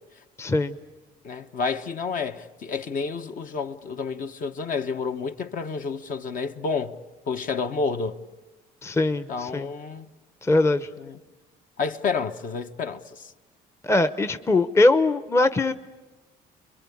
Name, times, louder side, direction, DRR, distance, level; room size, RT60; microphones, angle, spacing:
voice 1, 0.4-0.7 8.8-9.7 10.4-10.9 13.8-15.7, left 2 dB, 15° left, 0.8 m, -21 dB
voice 2, 1.2-7.0 7.3-8.2 9.3-10.1 11.0-11.2 11.8-13.3, left 5 dB, 50° left, 1.2 m, -30 dB
30.0 x 23.0 x 8.6 m
cardioid pair, 110°, 17 cm